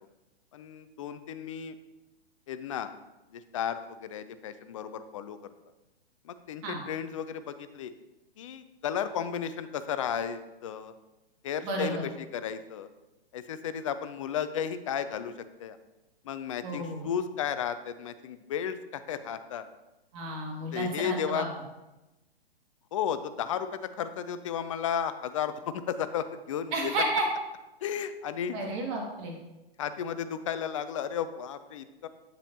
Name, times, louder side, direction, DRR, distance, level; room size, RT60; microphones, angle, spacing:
voice 1, 0.5-1.8 2.5-2.9 3.3-5.4 6.2-7.9 8.4-10.9 11.4-12.9 13.3-15.8 16.2-19.7 20.7-21.5 22.9-27.0 27.8-28.6 29.8-32.1, left 8 dB, 35° left, 12 dB, 0.4 m, -34 dB
voice 2, 11.6-12.1 16.6-17.1 20.1-21.5 26.7-27.3 28.5-29.4, right 2 dB, 30° right, 0 dB, 1.9 m, -32 dB
9.0 x 7.1 x 2.7 m, 1.0 s
figure-of-eight pair, 115°, 31 cm